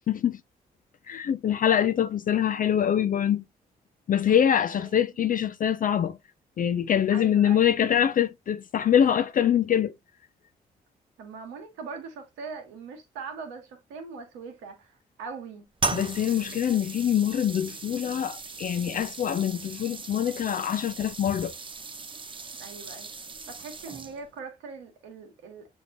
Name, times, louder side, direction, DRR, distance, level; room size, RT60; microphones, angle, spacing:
voice 1, 0.1-0.4 1.1-3.4 4.1-6.2 6.6-9.9 15.9-21.5, left 9 dB, 45° left, 0.4 m, -24 dB
voice 2, 4.3-4.9 7.1-7.8 11.2-15.7 22.5-23.1 23.5-25.7, right 5 dB, 80° right, 1.1 m, -41 dB
sound 1, 15.8-24.4, right 4 dB, 25° right, 0.6 m, -37 dB
6.3 x 2.7 x 2.6 m
hypercardioid pair, 40°, 20 cm